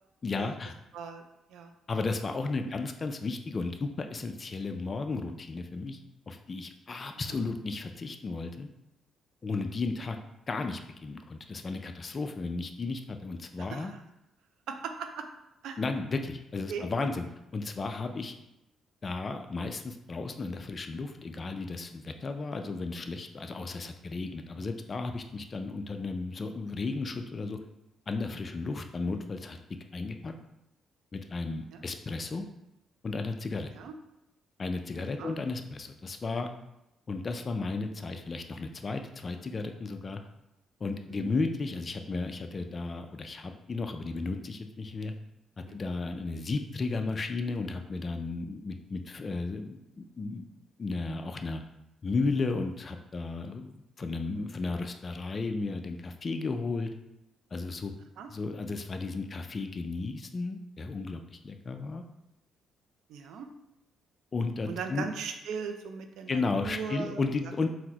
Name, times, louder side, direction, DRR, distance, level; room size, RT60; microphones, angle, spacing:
voice 1, 0.2-0.7 1.9-6.0 6.3-8.7 9.4-10.2 10.5-13.9 15.8-17.3 17.5-18.3 19.0-27.6 28.1-29.6 29.9-30.3 31.1-32.5 33.0-33.7 34.6-36.5 37.1-40.2 40.8-45.1 45.7-50.4 50.8-51.6 52.0-56.9 57.5-57.9 58.3-62.0 64.3-65.1 66.3-67.7, left 3 dB, 35° left, 6 dB, 0.3 m, -34 dB
voice 2, 13.6-14.0 14.7-15.2 15.6-15.8 16.7-16.9 31.7-31.8 33.7-33.9 35.2-35.4 38.1-38.2 41.1-41.3 45.6-45.8 58.2-58.3 63.1-63.5 64.7-67.5, right 6 dB, 80° right, 6 dB, 0.3 m, -39 dB
4.0 x 2.0 x 2.8 m, 0.88 s
cardioid pair, 90°, 0 cm